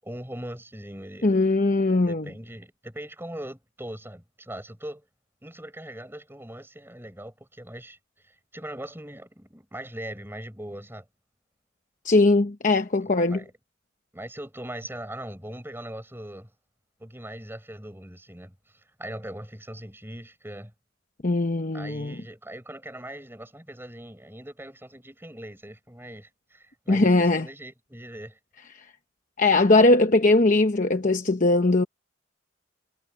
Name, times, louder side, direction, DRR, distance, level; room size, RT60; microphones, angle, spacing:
voice 1, 0.0-1.3 2.1-5.1 5.4-8.0 8.2-11.0 13.0-13.5 14.1-16.5 17.0-20.7 21.7-28.4, right 1 dB, 10° right, 7.6 m, -40 dB
voice 2, 1.2-2.3 12.0-13.4 21.2-22.1 26.9-27.5 28.7-28.9 29.4-31.8, left 2 dB, 40° left, 0.9 m, -20 dB
head